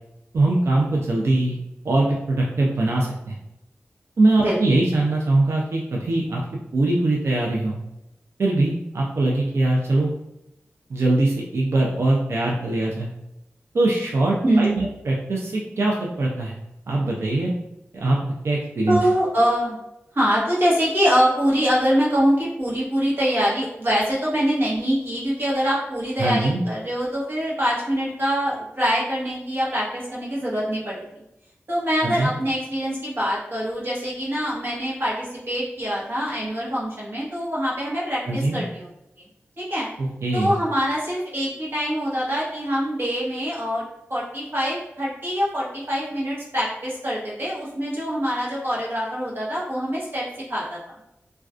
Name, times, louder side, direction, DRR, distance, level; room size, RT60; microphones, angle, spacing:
voice 1, 0.3-1.6 1.8-3.3 4.2-6.4 6.7-7.8 8.4-10.1 10.9-13.1 13.7-16.5 16.9-17.5 17.9-18.2 18.4-19.0 26.2-26.6 32.0-32.3 38.3-38.6 40.0-40.5, right 2 dB, 65° right, -2 dB, 0.4 m, -22 dB
voice 2, 14.4-14.8 18.9-19.8 20.1-31.0 31.7-38.9 39.6-39.9 40.3-43.8 44.1-50.9, equal, 50° right, -6 dB, 1.0 m, -24 dB
2.3 x 2.2 x 2.4 m, 0.86 s
wide cardioid pair, 65°, 5 cm